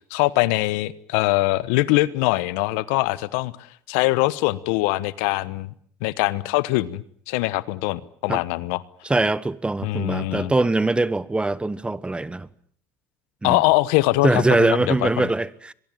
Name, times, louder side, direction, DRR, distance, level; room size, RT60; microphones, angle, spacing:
voice 1, 0.0-3.5 3.9-5.7 6.0-8.8 9.8-10.5 13.4-15.3, left 20 dB, 80° left, 1.1 m, -22 dB
voice 2, 9.0-12.5 13.4-13.6 14.2-15.7, right 2 dB, 15° right, 1.3 m, -22 dB
23.0 x 22.5 x 9.2 m
supercardioid pair, 85°, 8 cm